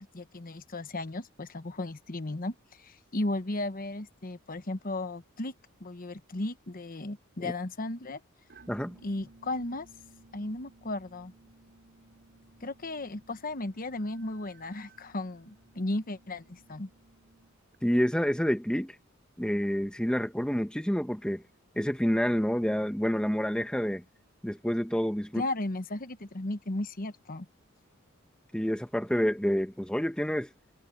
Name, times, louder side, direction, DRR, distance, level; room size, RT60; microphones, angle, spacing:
voice 1, 0.0-5.5 5.8-8.2 9.0-9.9 10.3-11.3 12.6-16.9 25.3-27.5, left 2 dB, 45° left, 1.1 m, -35 dB
sound 1, 8.5-17.7, right 2 dB, 55° right, 7.1 m, -58 dB
voice 2, 17.8-18.9 19.4-21.4 21.7-24.0 24.4-25.4 28.5-30.5, equal, 5° left, 1.2 m, -28 dB
head